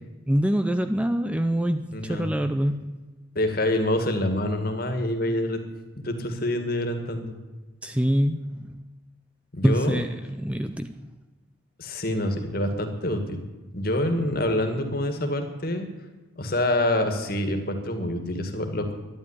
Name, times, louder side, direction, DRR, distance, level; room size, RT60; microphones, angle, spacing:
voice 1, 0.3-3.0 7.8-8.8 9.6-11.1, equal, 5° right, 8 dB, 0.5 m, -25 dB
voice 2, 1.9-2.3 3.4-5.6 6.0-7.3 9.5-10.0 11.8-13.4 13.7-15.9 16.4-18.9, left 1 dB, 45° left, 6 dB, 2.0 m, -26 dB
11.5 x 11.0 x 10.0 m, 1.2 s
head